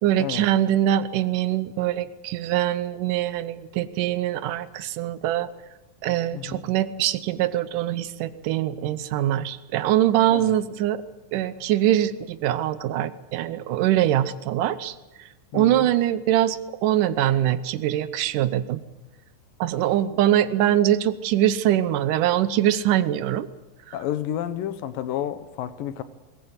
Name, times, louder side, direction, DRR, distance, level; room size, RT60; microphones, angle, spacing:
voice 1, 0.0-5.5 6.0-11.0 11.3-15.0 15.5-18.8 19.6-23.5, right 12 dB, 75° right, 14 dB, 2.4 m, -23 dB
voice 2, 15.5-15.9 23.9-26.0, left 11 dB, 90° left, 12 dB, 2.8 m, -30 dB
21.0 x 19.0 x 8.1 m, 1.1 s
omnidirectional pair, 3.8 m